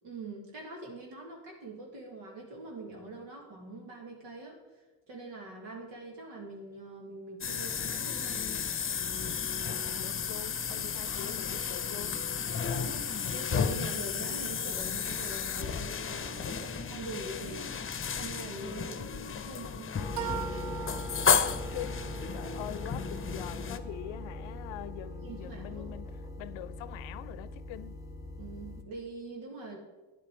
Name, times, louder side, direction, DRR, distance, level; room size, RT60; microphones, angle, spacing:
voice 1, 0.0-4.6 5.1-8.5 12.6-20.4 25.2-25.9 28.4-29.8, right 2 dB, 80° right, 2.3 m, -44 dB
sound 1, 7.4-23.8, left 7 dB, 25° left, 0.8 m, -33 dB
voice 2, 9.9-12.2 21.4-22.0 22.3-26.1 26.4-28.0, left 14 dB, 65° left, 0.7 m, -43 dB
sound 2, 13.2-13.4 20.1-25.9, right 12 dB, 40° right, 0.5 m, -44 dB
sound 3, 20.0-28.8, left 1 dB, 5° right, 2.0 m, -41 dB
10.5 x 8.5 x 4.7 m
hypercardioid pair, 55°, 49 cm